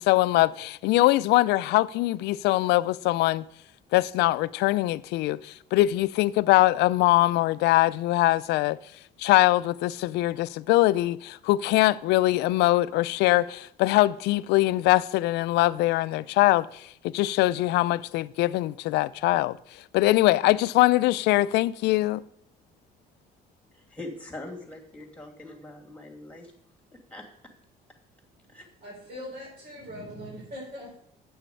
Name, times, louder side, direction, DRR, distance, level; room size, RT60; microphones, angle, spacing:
voice 1, 0.0-3.4 3.9-8.8 9.2-19.6 19.9-22.2, left 17 dB, 85° left, 0.4 m, -22 dB
voice 2, 23.7-26.5 26.9-27.2 28.5-28.7, left 2 dB, 5° left, 2.6 m, -42 dB
voice 3, 28.2-31.0, equal, 55° right, 3.7 m, -42 dB
9.1 x 7.8 x 5.4 m
cardioid pair, 110°, 17 cm